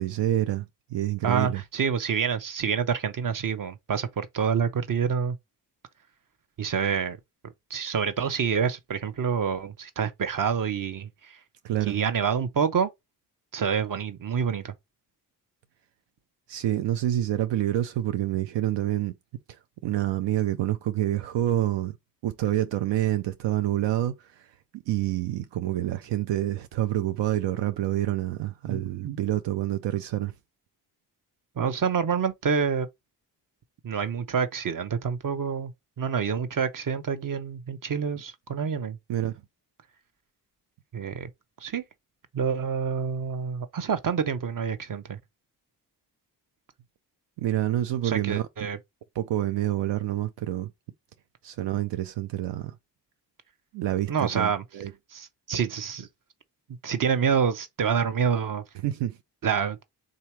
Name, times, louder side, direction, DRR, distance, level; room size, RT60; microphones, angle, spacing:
voice 1, 0.0-1.6 11.6-12.0 16.5-19.1 19.8-21.9 22.2-30.3 39.1-39.3 47.4-48.5 49.2-50.7 51.4-52.7 53.7-54.9 58.8-59.2, right 13 dB, 85° right, 0.5 m, -27 dB
voice 2, 1.2-5.4 6.6-7.2 7.7-11.4 11.8-12.9 13.5-14.7 28.7-29.2 31.6-32.9 33.8-35.7 36.0-39.0 40.9-41.3 41.6-41.8 42.3-45.2 48.0-48.8 54.1-54.6 55.1-56.1 56.8-58.6 59.4-59.8, right 6 dB, 50° right, 0.9 m, -27 dB
3.7 x 2.8 x 4.5 m
cardioid pair, 50°, 42 cm